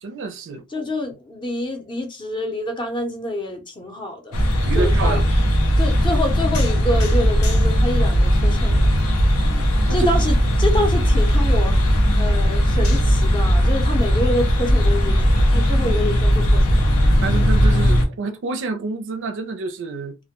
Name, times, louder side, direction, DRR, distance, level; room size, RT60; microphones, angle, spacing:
voice 1, 0.0-0.6 4.6-5.3 9.8-10.1 17.2-20.2, right 3 dB, 60° right, 0.4 m, -27 dB
voice 2, 0.7-4.4 4.7-5.2 5.8-8.9 9.4-11.8 12.2-15.2 15.5-16.8, left 1 dB, 25° left, 0.6 m, -27 dB
sound 1, 4.3-18.1, equal, 85° left, 0.6 m, -17 dB
2.1 x 2.1 x 2.9 m
head